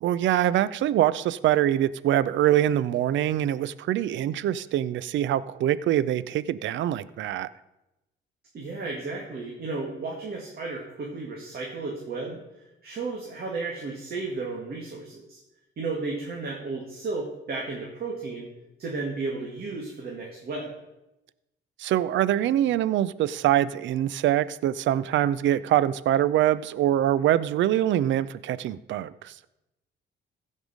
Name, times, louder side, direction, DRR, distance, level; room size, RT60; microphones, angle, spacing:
voice 1, 0.0-7.5 21.8-29.3, right 12 dB, 70° right, 18 dB, 0.5 m, -24 dB
voice 2, 8.5-12.4 12.8-15.4 15.8-18.5 18.8-20.7, right 3 dB, 50° right, -1 dB, 2.1 m, -33 dB
15.5 x 5.4 x 5.1 m, 0.94 s
cardioid pair, 90°, 20 cm